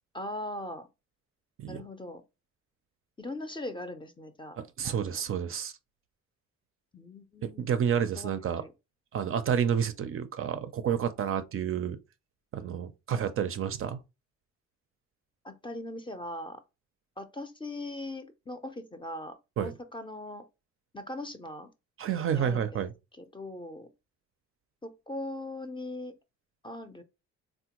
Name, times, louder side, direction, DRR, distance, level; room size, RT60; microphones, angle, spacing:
voice 1, 0.1-0.9 1.7-2.2 3.2-5.2 6.9-7.7 8.1-8.7 15.4-16.6 17.2-20.4 20.9-21.7 22.3-22.8 23.2-23.9 24.8-26.1 26.6-27.0, left 1 dB, 15° left, 0.5 m, -40 dB
voice 2, 4.6-5.7 7.4-8.6 9.1-12.0 12.5-14.0 19.6-19.7 22.0-22.9, right 8 dB, 45° right, 0.4 m, -30 dB
3.4 x 2.1 x 2.9 m
cardioid pair, 90°, 30 cm